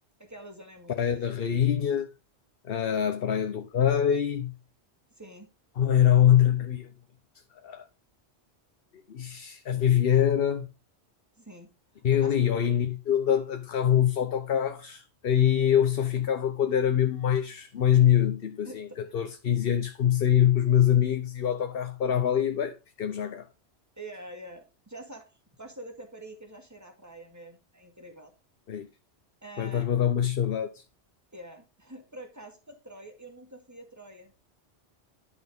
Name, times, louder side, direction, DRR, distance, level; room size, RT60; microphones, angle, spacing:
voice 1, 0.2-1.2 5.2-5.5 11.4-11.7 11.9-12.3 18.7-19.0 24.0-25.3 25.6-28.3 29.4-29.9 31.3-34.3, right 1 dB, 15° right, 2.2 m, -46 dB
voice 2, 1.0-2.1 2.6-4.5 5.8-6.9 7.6-7.9 9.1-10.7 12.0-18.9 19.1-23.5 28.7-28.9 29.6-30.8, left 10 dB, 60° left, 1.0 m, -24 dB
11.0 x 6.1 x 3.6 m
omnidirectional pair, 1.2 m